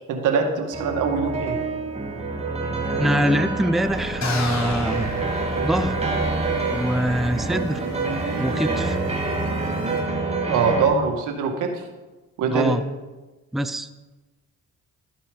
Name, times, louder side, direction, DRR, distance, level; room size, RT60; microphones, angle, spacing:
voice 1, 0.1-1.6 10.5-11.7 12.4-12.8, right 5 dB, 85° right, 3 dB, 1.9 m, -22 dB
sound 1, 0.7-10.8, right 3 dB, 20° right, 2.4 m, -27 dB
voice 2, 3.0-5.1 5.6-6.0 6.7-7.8 8.4-9.0 12.5-12.8 13.5-13.9, equal, ahead, 11 dB, 0.6 m, -23 dB
sound 2, 3.8-10.0, right 4 dB, 60° right, 3.8 m, -35 dB
sound 3, 4.2-6.1, left 4 dB, 65° left, 1.9 m, -32 dB
13.0 x 8.7 x 5.3 m, 1.2 s
cardioid pair, 90°, 30 cm